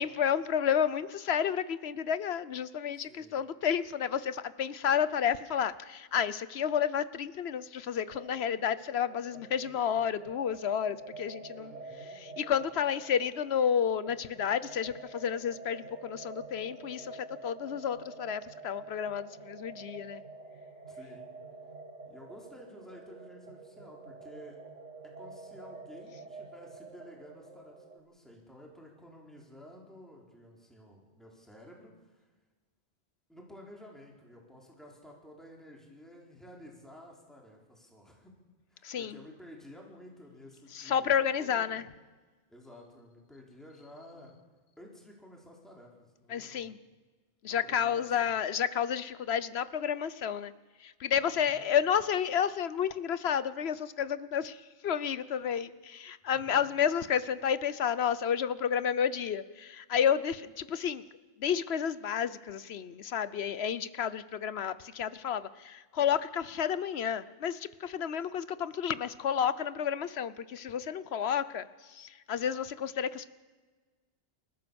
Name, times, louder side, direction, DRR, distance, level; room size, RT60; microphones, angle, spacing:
voice 1, 0.0-20.2 38.8-39.2 40.7-41.9 46.3-46.8 47.4-50.5 50.8-61.0 61.4-73.3, left 8 dB, 65° left, 15 dB, 1.0 m, -31 dB
voice 2, 3.0-3.4 11.6-12.2 20.9-21.2 22.1-24.6 25.0-32.3 33.3-38.3 38.7-41.8 42.5-44.4 44.8-46.7 47.4-48.3 51.2-51.7 56.3-56.6, left 1 dB, ahead, -1 dB, 4.1 m, -52 dB
sound 1, 8.1-28.0, right 3 dB, 90° right, 2.1 m, -48 dB
29.5 x 13.5 x 7.0 m, 1.3 s
omnidirectional pair, 1.2 m